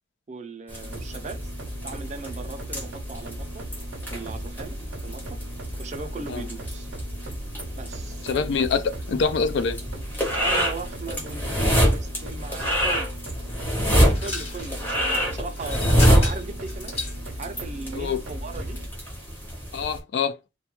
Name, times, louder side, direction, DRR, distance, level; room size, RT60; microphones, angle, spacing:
voice 1, 0.3-1.5 1.8-3.7 4.1-4.8 5.0-5.4 5.8-6.9 7.8-8.3 10.3-13.1 14.2-17.0 17.4-18.8, right 3 dB, 40° right, 0.4 m, -38 dB
sound 1, 0.7-20.0, equal, 10° left, 0.6 m, -27 dB
sound 2, 0.8-18.9, equal, 85° right, 0.5 m, -37 dB
voice 2, 8.2-9.8 18.0-18.2 19.7-20.4, left 5 dB, 65° left, 0.3 m, -25 dB
sound 3, 14.0-14.7 15.5-17.2, left 3 dB, 35° left, 1.1 m, -34 dB
2.2 x 2.2 x 2.9 m
head